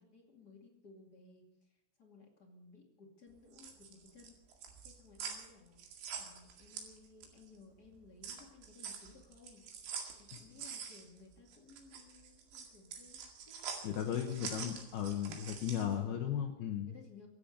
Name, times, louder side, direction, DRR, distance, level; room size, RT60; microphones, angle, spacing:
voice 1, 0.0-4.4 4.8-5.8 6.2-14.8 15.7-16.4 16.9-17.3, left 4 dB, 35° left, 0 dB, 1.5 m, -59 dB
sound 1, 3.3-7.5 7.8-16.0, right 6 dB, 70° right, 4.3 m, -46 dB
voice 2, 13.8-16.9, left 9 dB, 75° left, 4 dB, 2.4 m, -36 dB
24.5 x 8.8 x 6.6 m, 0.88 s
omnidirectional pair, 5.7 m